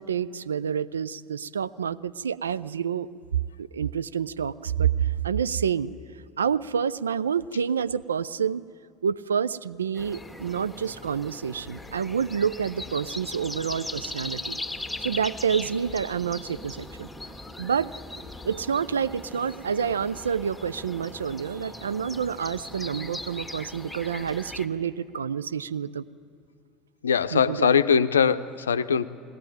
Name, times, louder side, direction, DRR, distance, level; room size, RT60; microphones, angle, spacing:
voice 1, 0.0-3.1 3.6-5.9 6.4-8.6 9.0-14.6 15.0-17.1 17.6-17.9 18.4-26.0 27.3-27.8, right 7 dB, 75° right, 17 dB, 0.4 m, -28 dB
sound 1, 9.9-24.7, left 2 dB, 5° left, 1.6 m, -39 dB
voice 2, 27.0-29.1, left 7 dB, 75° left, 13 dB, 0.6 m, -21 dB
20.5 x 18.5 x 9.1 m, 2.3 s
figure-of-eight pair, 65°, 0 cm